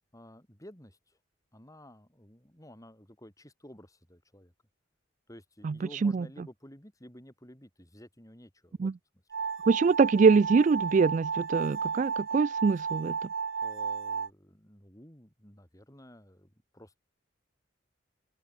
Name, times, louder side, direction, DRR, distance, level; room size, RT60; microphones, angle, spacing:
voice 1, 0.1-1.2 1.5-4.5 5.3-8.9 13.6-17.0, equal, 20° left, 6.8 m, -52 dB
sound 1, 9.3-14.3, right 5 dB, 80° right, 0.8 m, -33 dB
voice 2, 9.7-13.3, right 5 dB, 40° right, 0.3 m, -24 dB
open air
head